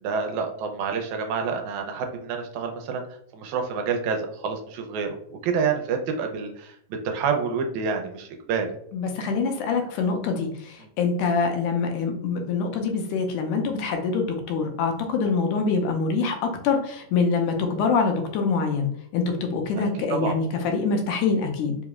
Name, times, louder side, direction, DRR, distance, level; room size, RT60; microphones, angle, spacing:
voice 1, 0.0-3.0 3.3-6.8 7.0-8.7 10.8-10.9 19.8-19.9 20.1-20.4, right 5 dB, 80° right, 4 dB, 1.9 m, -28 dB
voice 2, 8.9-18.9 19.1-21.8, left 4 dB, 90° left, 3 dB, 2.2 m, -25 dB
5.0 x 3.0 x 2.3 m, 0.69 s
omnidirectional pair, 3.5 m